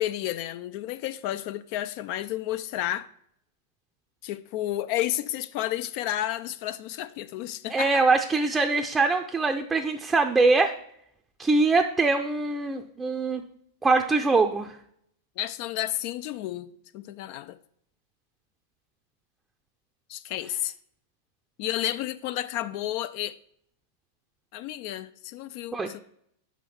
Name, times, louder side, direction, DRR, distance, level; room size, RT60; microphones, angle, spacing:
voice 1, 0.0-3.1 4.2-8.0 15.4-17.6 20.1-20.7 21.6-23.4 24.5-26.0, left 13 dB, 55° left, 0.3 m, -31 dB
voice 2, 7.7-10.7 11.4-13.4 13.8-14.7 25.7-25.9, right 3 dB, 15° right, 0.5 m, -23 dB
5.2 x 5.1 x 5.7 m
hypercardioid pair, 105°, 0 cm